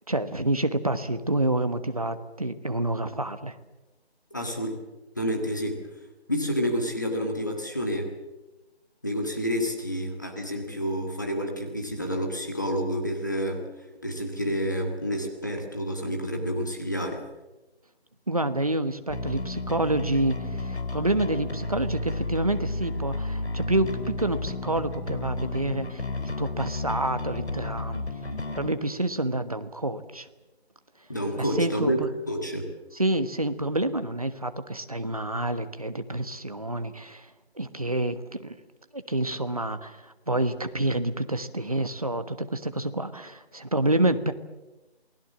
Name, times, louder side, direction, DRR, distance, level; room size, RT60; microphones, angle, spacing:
voice 1, 0.1-3.5 18.3-26.1 26.4-28.0 28.5-30.3 31.4-32.1 33.0-37.3 37.6-38.5 38.9-44.3, right 1 dB, 35° right, 10 dB, 1.2 m, -28 dB
voice 2, 4.3-4.7 5.1-5.8 6.3-8.1 9.0-13.7 14.0-17.2 31.1-32.7, equal, 15° left, 2 dB, 1.6 m, -29 dB
Bass guitar, 19.1-28.7, left 2 dB, 80° left, 4.2 m, -32 dB
28.0 x 20.0 x 7.4 m, 1.1 s
figure-of-eight pair, 180°, 32 cm